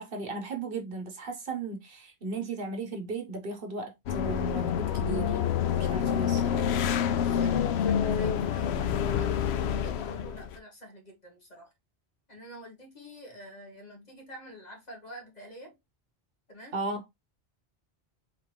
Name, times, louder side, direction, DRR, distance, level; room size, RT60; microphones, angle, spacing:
voice 1, 0.0-5.4 5.8-6.7 16.7-17.0, right 3 dB, 60° right, 1.1 m, -36 dB
sound 1, 4.1-10.6, left 8 dB, 85° left, 0.8 m, -27 dB
voice 2, 7.0-11.7 12.3-15.8 16.5-16.8, right 1 dB, 40° left, 1.6 m, -47 dB
4.0 x 3.5 x 3.0 m
omnidirectional pair, 1.1 m